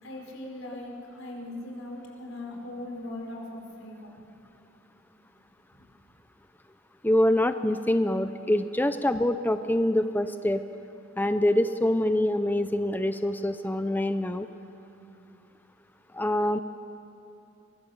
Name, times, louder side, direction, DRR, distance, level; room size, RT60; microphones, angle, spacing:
voice 1, 0.0-4.1 5.7-5.8, left 1 dB, 85° left, 0 dB, 4.8 m, -39 dB
voice 2, 7.0-10.6 11.2-14.5 16.1-16.6, left 1 dB, 10° left, 10 dB, 0.5 m, -25 dB
23.5 x 21.0 x 7.3 m, 2.8 s
head